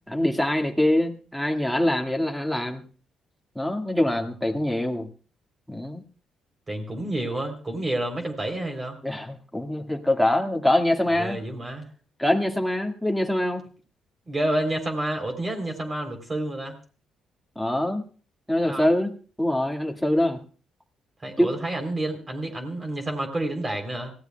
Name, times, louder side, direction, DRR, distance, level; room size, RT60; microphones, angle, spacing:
voice 1, 0.1-2.8 3.6-5.1 5.7-6.0 9.0-11.4 12.2-13.6 17.6-18.0 18.5-19.1 19.4-20.4 21.4-21.5, left 1 dB, ahead, 2 dB, 1.9 m, -24 dB
voice 2, 6.7-9.0 11.2-11.9 14.3-16.8 18.6-18.9 21.2-24.1, right 1 dB, 25° right, 4 dB, 3.5 m, -29 dB
25.0 x 16.0 x 2.3 m, 0.40 s
cardioid pair, 90°, 0 cm